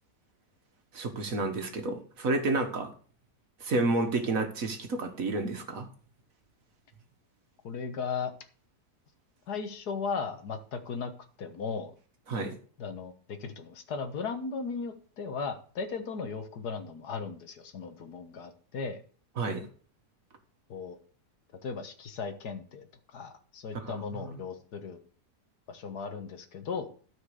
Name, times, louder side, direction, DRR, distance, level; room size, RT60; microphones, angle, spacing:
voice 1, 0.9-2.9 3.6-5.9 12.3-12.5 19.4-19.7 23.7-24.4, right 2 dB, 55° right, 6 dB, 1.7 m, -30 dB
voice 2, 7.6-8.3 9.5-11.1 11.4-11.9 12.8-19.0 20.7-21.0 21.6-22.9 23.1-25.0 25.7-26.9, left 5 dB, 70° left, 8 dB, 1.8 m, -36 dB
13.0 x 5.2 x 6.7 m, 0.42 s
omnidirectional pair, 1.8 m